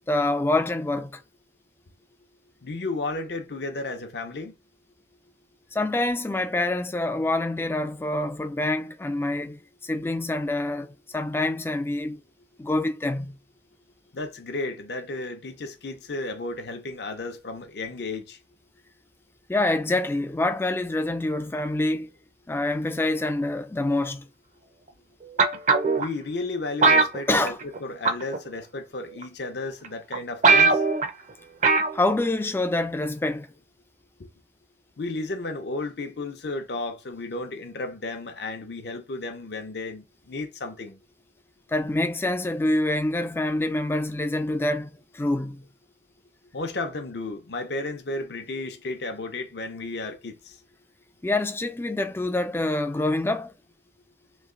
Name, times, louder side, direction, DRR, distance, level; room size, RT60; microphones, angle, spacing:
voice 1, 0.1-1.2 5.7-12.2 12.6-13.4 19.5-22.1 22.5-24.3 27.3-27.6 31.9-33.5 41.7-45.6 51.2-53.5, left 2 dB, 15° left, 0.3 m, -26 dB
voice 2, 2.6-4.5 14.1-18.4 26.0-27.5 27.8-30.8 34.2-34.3 35.0-41.0 46.5-50.6, left 2 dB, 65° left, 0.6 m, -33 dB
sound 1, 25.4-26.1 26.8-27.8 28.1-28.4 29.2-29.3 29.8-29.9 30.1-30.2 30.4-31.1 31.6-32.0 32.3-32.4, right 4 dB, 40° right, 0.6 m, -19 dB
3.1 x 3.1 x 3.7 m
head